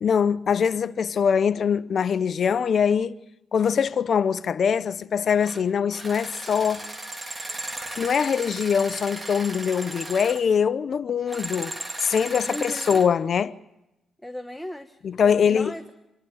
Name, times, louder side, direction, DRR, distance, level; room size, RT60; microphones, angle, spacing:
voice 1, 0.0-3.1 3.5-6.9 8.0-11.7 12.0-13.5 15.0-15.7, left 7 dB, 55° left, 0.7 m, -23 dB
sound 1, 5.4-5.6 5.9-10.4 11.3-13.1, right 2 dB, 25° right, 2.2 m, -36 dB
voice 2, 12.4-13.0 14.2-15.0 15.2-15.9, left 1 dB, 5° left, 1.0 m, -36 dB
26.5 x 11.5 x 9.3 m
cardioid pair, 85°, 0 cm